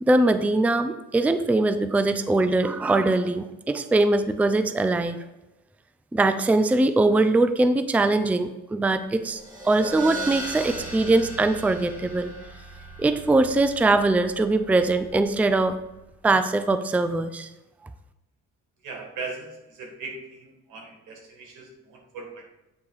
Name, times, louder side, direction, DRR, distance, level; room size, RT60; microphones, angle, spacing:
voice 1, 0.0-5.2 6.1-12.3 13.0-15.8 16.2-17.5, right 2 dB, 5° right, 11 dB, 0.4 m, -22 dB
sound 1, 9.2-16.2, right 3 dB, 25° right, 1.9 m, -38 dB
voice 2, 18.8-22.4, right 3 dB, 85° right, 1 dB, 2.0 m, -39 dB
8.2 x 3.4 x 4.8 m, 0.99 s
cardioid pair, 90°, 30 cm